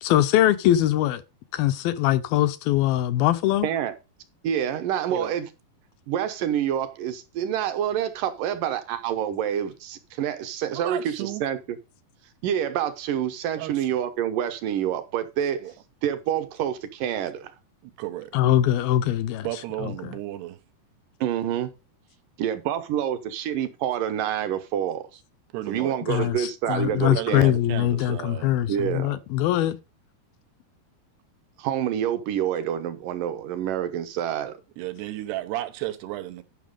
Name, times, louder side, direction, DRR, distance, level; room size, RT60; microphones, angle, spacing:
voice 1, 0.0-1.2 1.5-3.7 18.3-19.5 26.1-29.8, left 13 dB, 80° left, 2.3 m, -22 dB
voice 2, 3.6-3.9 4.4-5.5 6.1-11.6 12.4-15.6 16.0-17.5 21.2-21.7 22.4-25.2 25.7-27.5 28.7-29.2 31.6-34.6, right 10 dB, 70° right, 2.2 m, -27 dB
voice 3, 10.7-11.4 13.6-13.9 15.6-15.7 17.8-18.3 19.4-20.6 25.5-26.2 27.1-28.9 34.8-36.4, right 15 dB, 90° right, 3.1 m, -34 dB
11.5 x 5.9 x 5.1 m
omnidirectional pair, 4.6 m